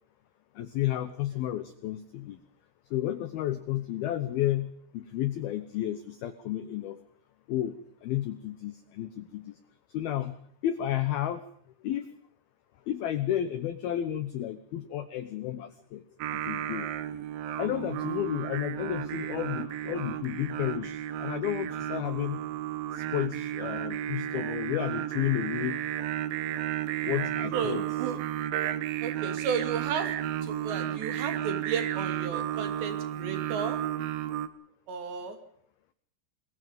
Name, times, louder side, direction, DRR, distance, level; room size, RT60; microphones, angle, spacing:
voice 1, 0.6-2.4 2.9-7.0 7.5-9.6 9.9-11.4 11.8-12.1 12.9-16.0 16.3-16.9 17.6-22.4 22.9-25.8 27.0-27.9, left 12 dB, 80° left, 13 dB, 2.2 m, -32 dB
Singing, 16.2-34.5, right 11 dB, 85° right, 2.0 m, -33 dB
voice 2, 27.5-28.2 29.0-30.2 30.4-33.8 34.9-35.4, right 6 dB, 60° right, 8 dB, 4.7 m, -34 dB
27.5 x 21.5 x 5.4 m, 0.63 s
omnidirectional pair, 5.9 m